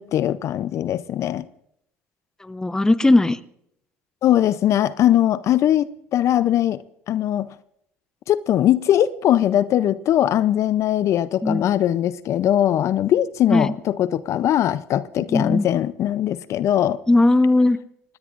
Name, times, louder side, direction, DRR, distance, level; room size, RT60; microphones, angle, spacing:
voice 1, 0.0-1.5 4.2-7.5 8.3-17.0, left 11 dB, 60° left, 0.5 m, -20 dB
voice 2, 2.4-3.4 11.4-11.7 13.5-13.7 15.3-15.7 17.1-17.8, left 2 dB, 10° left, 0.7 m, -18 dB
25.0 x 19.0 x 2.5 m
supercardioid pair, 80°, 6 cm